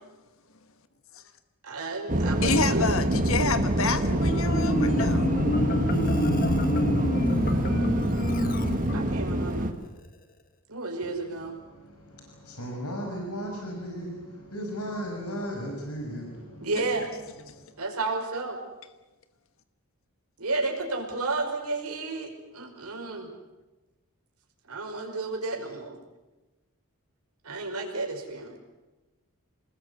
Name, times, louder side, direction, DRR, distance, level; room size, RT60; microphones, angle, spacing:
voice 1, 1.6-2.9 7.2-8.4 8.9-9.7 10.7-11.6 16.6-17.1 17.8-18.6 20.4-23.3 24.7-26.0 27.4-28.6, right 3 dB, 90° right, 2 dB, 5.4 m, -32 dB
sound 1, 2.1-9.7, right 1 dB, 35° right, 1.8 m, -26 dB
voice 2, 2.4-5.3, left 4 dB, 70° left, 9 dB, 1.3 m, -28 dB
Marimba xylophone, 4.3-9.4, left 1 dB, 40° left, 1.3 m, -28 dB
voice 3, 11.5-16.7 17.5-17.7, equal, 90° left, 1 dB, 5.5 m, -36 dB
26.5 x 20.5 x 8.2 m, 1.1 s
head